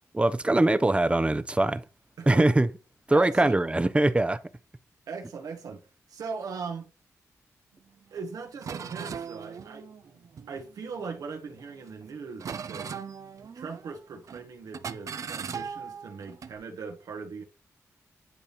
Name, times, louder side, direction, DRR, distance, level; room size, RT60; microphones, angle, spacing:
voice 1, 0.1-1.8 2.3-2.7 3.1-4.4, right 2 dB, 20° right, 0.8 m, -22 dB
voice 2, 2.2-2.5 3.1-3.6 5.1-6.9 8.1-12.9 13.5-17.4, right 5 dB, 85° right, 1.6 m, -39 dB
sound 1, 8.2-8.3 8.6-11.1 11.6-12.0 12.4-14.0 14.3-14.5 14.7-16.5, right 6 dB, 65° right, 0.6 m, -39 dB
10.0 x 3.5 x 4.2 m
cardioid pair, 65°, 6 cm